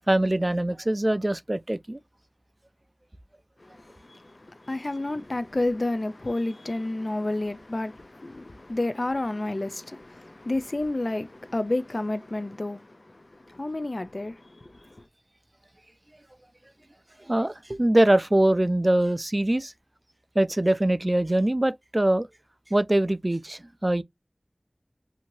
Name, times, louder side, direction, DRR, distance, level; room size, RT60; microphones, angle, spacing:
voice 1, 0.1-2.0 17.2-19.7 20.4-22.3 22.7-24.0, right 1 dB, 35° right, 0.3 m, -23 dB
voice 2, 3.6-15.0, left 2 dB, 65° left, 0.4 m, -30 dB
2.8 x 2.6 x 2.9 m
wide cardioid pair, 40°, 0 cm